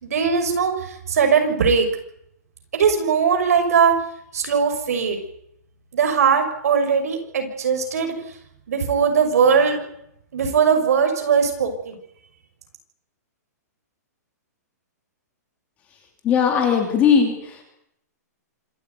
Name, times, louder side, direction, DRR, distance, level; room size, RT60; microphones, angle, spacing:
voice 1, 0.0-1.9 2.7-3.9 4.3-5.2 5.9-8.1 8.7-9.8 10.3-12.0, right 6 dB, 60° right, 6 dB, 6.0 m, -19 dB
voice 2, 16.2-17.6, left 7 dB, 15° left, 4 dB, 2.9 m, -18 dB
26.0 x 13.5 x 9.4 m, 0.74 s
hypercardioid pair, 180°, 9 cm